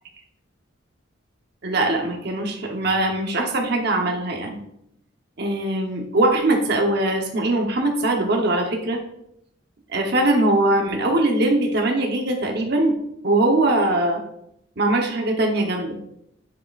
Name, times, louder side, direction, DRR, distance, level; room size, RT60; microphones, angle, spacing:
voice 1, 1.6-4.6 5.4-9.0 9.9-12.9 13.2-14.2 14.8-16.0, right 2 dB, 55° right, 2 dB, 1.0 m, -21 dB
7.7 x 7.1 x 2.5 m, 0.76 s
head